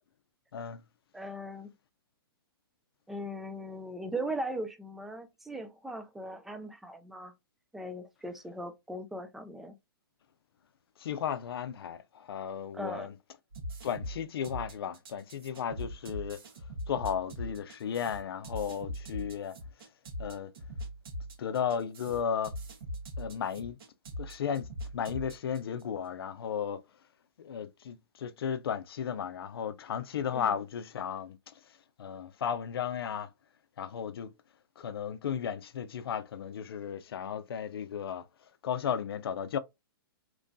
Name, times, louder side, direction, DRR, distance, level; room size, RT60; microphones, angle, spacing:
voice 1, 1.1-1.7 3.1-7.3 7.7-9.8 12.7-13.1 30.3-30.6, right 1 dB, ahead, 0.3 m, -39 dB
voice 2, 11.0-13.1 13.8-16.4 16.9-19.6 20.2-20.5 21.4-22.5 23.2-23.8 24.2-24.7 24.9-26.8 27.4-31.4 32.0-33.3 33.8-34.3 34.8-38.3 38.6-39.6, left 8 dB, 75° left, 0.5 m, -34 dB
sound 1, 13.5-25.8, equal, 70° right, 1.3 m, -41 dB
3.0 x 2.2 x 2.5 m
hypercardioid pair, 145°, 13 cm